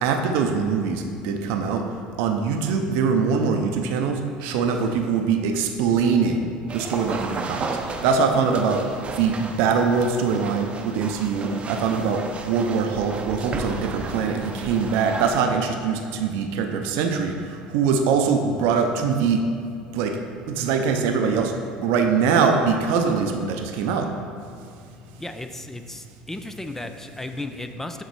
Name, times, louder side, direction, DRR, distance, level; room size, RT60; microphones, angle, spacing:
voice 1, 0.0-1.8 2.2-6.5 6.7-7.7 8.0-8.9 9.2-17.3 17.7-19.4 19.9-20.2 20.5-21.5 21.8-24.1, right 5 dB, 75° right, 5 dB, 0.6 m, -22 dB
sound 1, 6.7-15.5, right 3 dB, 30° right, 0.7 m, -34 dB
voice 2, 25.2-28.0, left 1 dB, 10° left, 7 dB, 0.4 m, -35 dB
6.6 x 4.1 x 4.7 m, 2.4 s
supercardioid pair, 80°, 4 cm